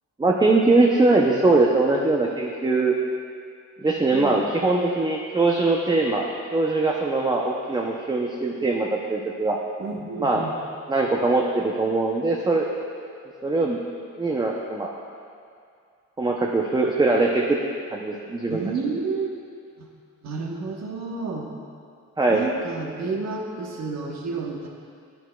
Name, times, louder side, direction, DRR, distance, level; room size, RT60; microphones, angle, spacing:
voice 1, 0.2-2.9 3.8-9.6 10.2-10.4 10.9-12.7 13.4-13.8 14.2-14.9 16.2-17.6 17.9-18.6 22.2-22.4, right 3 dB, 15° right, -1 dB, 0.6 m, -21 dB
voice 2, 4.1-4.4 9.8-10.5 18.5-19.4 19.8-19.9 20.2-21.5 22.3-24.7, right 4 dB, 60° right, 0 dB, 1.2 m, -30 dB
9.6 x 9.2 x 2.3 m, 2.3 s
cardioid pair, 90°, 30 cm